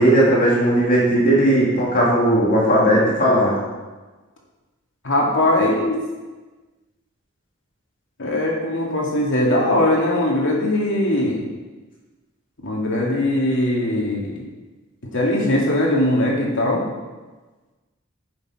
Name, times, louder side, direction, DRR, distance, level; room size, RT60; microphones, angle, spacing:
voice 1, 0.0-3.5, right 1 dB, 40° left, -5 dB, 2.5 m, -17 dB
voice 2, 5.0-6.0 8.2-11.4 12.6-14.4 15.1-16.8, left 1 dB, 65° left, -2 dB, 2.5 m, -20 dB
10.5 x 7.0 x 5.0 m, 1.2 s
head